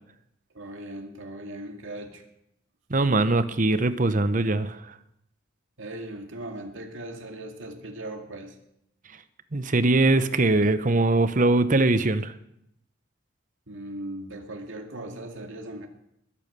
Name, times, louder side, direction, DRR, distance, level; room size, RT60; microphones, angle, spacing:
voice 1, 0.5-2.2 5.8-8.5 13.7-15.9, right 1 dB, 80° right, 3 dB, 2.2 m, -38 dB
voice 2, 2.9-4.8 9.5-12.3, right 2 dB, 40° right, 12 dB, 0.9 m, -22 dB
21.0 x 8.9 x 6.7 m, 0.79 s
head